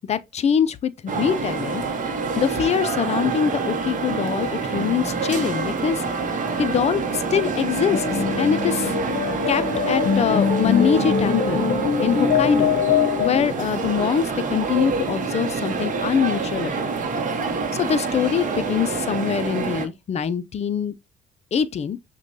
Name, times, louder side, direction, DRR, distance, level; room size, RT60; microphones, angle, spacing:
voice 1, 0.1-1.8 2.4-6.0 6.6-8.9 9.5-11.7 12.0-12.7 13.2-16.9 17.7-20.9 21.5-22.0, left 8 dB, 35° left, 0.4 m, -23 dB
sound 1, 1.1-19.9, right 4 dB, 45° right, 0.8 m, -27 dB
sound 2, 7.9-13.4, left 7 dB, 60° left, 0.8 m, -22 dB
6.0 x 2.2 x 2.6 m
cardioid pair, 95°, 19 cm